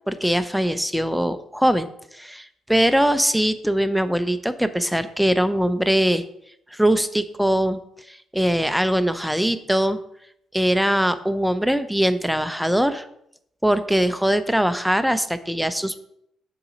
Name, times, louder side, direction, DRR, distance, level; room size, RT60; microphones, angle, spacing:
voice 1, 0.1-1.9 2.1-6.2 6.7-7.8 8.1-10.0 10.5-13.1 13.6-16.0, equal, ahead, 11 dB, 0.5 m, -21 dB
7.0 x 3.9 x 5.1 m, 0.73 s
cardioid pair, 90°, 0 cm